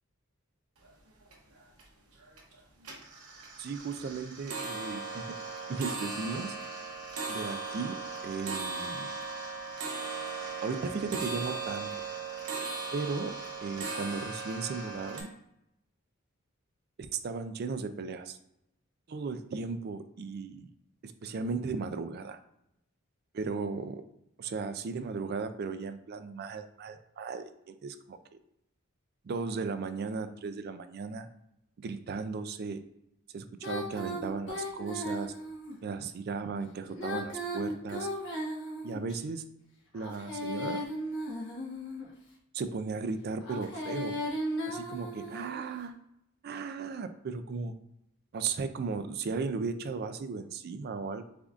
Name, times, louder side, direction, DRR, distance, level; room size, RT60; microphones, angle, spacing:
sound 1, 0.8-0.9 1.2-1.8 2.2-2.5 2.8-15.2, right 4 dB, 85° right, 0.9 m, -38 dB
voice 1, 3.6-5.2 5.7-6.6 7.3-8.0 8.2-9.1 10.6-11.9 12.9-13.3 13.6-15.3 17.1-18.4 19.1-20.7 21.0-22.4 23.3-24.0 24.4-28.2 29.2-31.3 31.8-32.8 33.3-35.3 35.8-38.1 38.8-39.4 39.9-40.8 42.5-44.1 44.7-45.9 46.4-47.7 48.3-51.2, right 4 dB, 45° right, 10 dB, 0.3 m, -36 dB
Female singing, 33.6-35.7 36.9-39.2 40.0-42.1 43.4-45.6, equal, 55° left, 1.1 m, -36 dB
6.8 x 2.6 x 2.4 m, 0.80 s
head